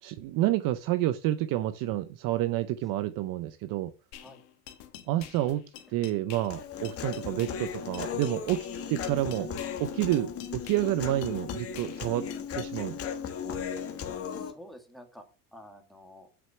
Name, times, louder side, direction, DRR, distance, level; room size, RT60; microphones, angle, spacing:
voice 1, 0.0-3.9 5.1-9.5 9.8-12.3 12.6-13.0, right 14 dB, 45° right, 0.6 m, -29 dB
sound 1, 4.1-12.7, left 12 dB, 60° left, 1.8 m, -48 dB
Human voice, 6.5-14.5, left 7 dB, 30° left, 1.5 m, -36 dB
voice 2, 14.2-15.2 15.5-16.3, equal, ahead, 1.6 m, -50 dB
7.7 x 6.2 x 5.7 m
cardioid pair, 150°, 49 cm